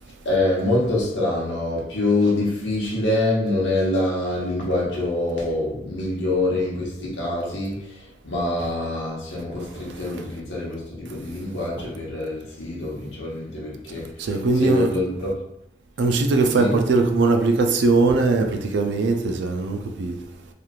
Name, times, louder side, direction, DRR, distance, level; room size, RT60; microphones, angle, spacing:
voice 1, 0.2-14.3 14.5-15.4 16.6-16.8, left 2 dB, 85° left, 1.0 m, -25 dB
voice 2, 14.2-14.9 16.0-20.2, right 3 dB, 70° right, 0.4 m, -20 dB
3.0 x 2.4 x 2.4 m
head